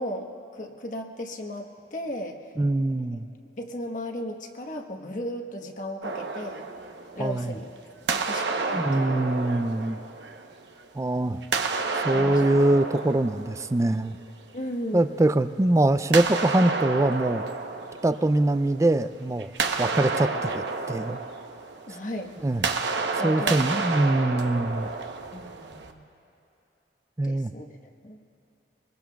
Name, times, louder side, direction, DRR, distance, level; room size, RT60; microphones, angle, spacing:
voice 1, 0.0-2.4 3.6-6.7 7.1-7.7 8.1-9.4 12.1-12.5 14.5-15.2 21.9-22.3 23.2-23.7 24.1-24.3 25.3-26.0 27.2-27.7 28.0-28.2, left 1 dB, 45° left, 2 dB, 1.2 m, -35 dB
voice 2, 2.6-3.3 7.2-7.5 8.7-10.0 11.0-11.4 12.0-14.2 14.9-17.4 18.0-19.5 19.8-21.2 22.4-22.7 23.2-24.9 27.2-27.5, right 2 dB, 15° right, 12 dB, 0.4 m, -23 dB
sound 1, 6.0-7.7 8.1-10.9 11.4-14.3 16.1-18.9 19.2-25.9, right 4 dB, 80° right, 0.9 m, -30 dB
25.5 x 21.0 x 2.3 m, 2.8 s
head